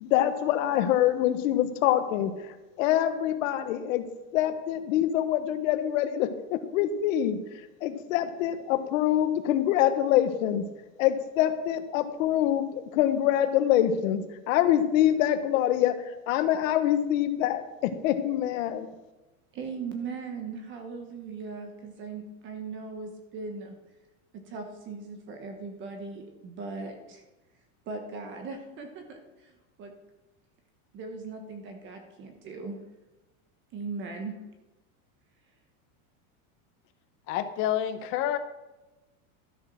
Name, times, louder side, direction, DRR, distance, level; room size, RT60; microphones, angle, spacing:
voice 1, 0.0-4.0 4.3-7.4 7.8-10.6 11.0-16.0 16.3-18.9, left 11 dB, 60° left, 10 dB, 1.2 m, -25 dB
voice 2, 19.5-23.7 24.3-27.2 27.9-29.9 30.9-32.8 33.7-34.3, right 4 dB, 25° right, 5 dB, 1.1 m, -39 dB
voice 3, 37.3-38.4, left 11 dB, 30° left, 9 dB, 0.7 m, -28 dB
13.0 x 6.5 x 6.3 m, 1.1 s
supercardioid pair, 175°, 44 cm